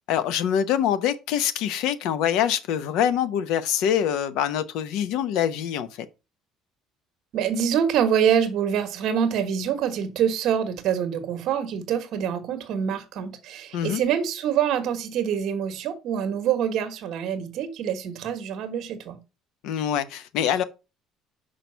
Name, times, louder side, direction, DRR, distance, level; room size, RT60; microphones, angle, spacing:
voice 1, 0.1-6.1 13.7-14.0 19.6-20.6, left 9 dB, 70° left, 0.8 m, -24 dB
voice 2, 7.3-19.2, right 8 dB, 50° right, 1.3 m, -25 dB
6.1 x 4.8 x 5.6 m
cardioid pair, 175°, 0 cm